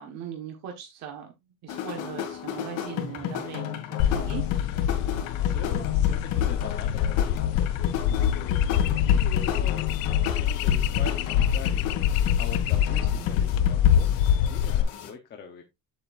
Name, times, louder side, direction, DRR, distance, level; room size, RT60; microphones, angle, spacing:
voice 1, 0.0-1.3 1.6-4.5 12.8-13.3, right 8 dB, 55° right, 2 dB, 1.5 m, -39 dB
Bucket Drummer, 1.7-15.1, left 9 dB, 65° left, 2.2 m, -33 dB
sound 1, 4.0-14.8, left 9 dB, 85° left, 0.7 m, -24 dB
voice 2, 5.4-9.9 10.4-11.9 12.4-14.2 14.5-15.7, left 6 dB, 30° left, 3 dB, 1.0 m, -43 dB
8.0 x 7.9 x 2.6 m, 0.21 s
cardioid pair, 175°, 33 cm